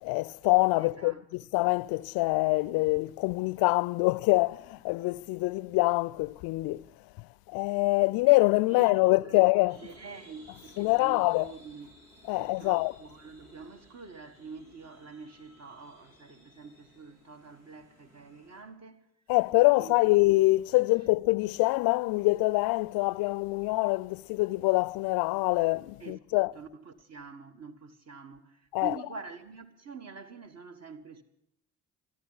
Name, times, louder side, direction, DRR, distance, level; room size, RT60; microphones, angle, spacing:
voice 1, 0.0-6.8 7.5-9.8 10.8-11.5 12.3-12.9 19.3-26.5 28.7-28.9, left 23 dB, 60° left, 0.5 m, -25 dB
voice 2, 0.8-1.5 8.7-9.4 9.7-12.0 12.3-19.0 19.7-20.2 26.0-31.2, right 4 dB, 40° right, 1.5 m, -46 dB
sound 1, 9.7-18.6, equal, 90° right, 2.3 m, -58 dB
26.0 x 11.0 x 4.0 m
figure-of-eight pair, 40°, 41 cm